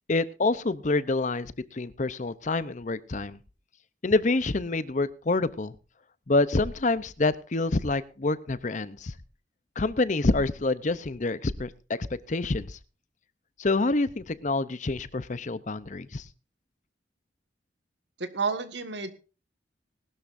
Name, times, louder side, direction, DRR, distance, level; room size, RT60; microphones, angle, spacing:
voice 1, 0.1-3.4 4.0-5.7 6.3-9.1 9.8-11.7 12.1-12.8 13.6-16.2, left 2 dB, 40° left, 16 dB, 0.7 m, -27 dB
voice 2, 18.2-19.1, right 4 dB, 65° right, 9 dB, 1.7 m, -30 dB
20.0 x 12.0 x 2.6 m, 0.34 s
head